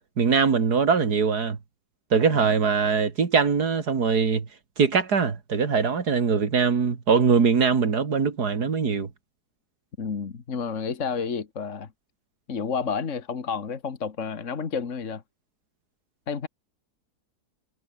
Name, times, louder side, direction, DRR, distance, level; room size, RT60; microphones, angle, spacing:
voice 1, 0.2-1.6 2.1-4.5 4.8-9.1, right 5 dB, 80° right, 2.8 m, -22 dB
voice 2, 10.0-11.9 12.5-15.2 16.3-16.5, left 5 dB, 50° left, 2.0 m, -30 dB
omnidirectional pair, 1.7 m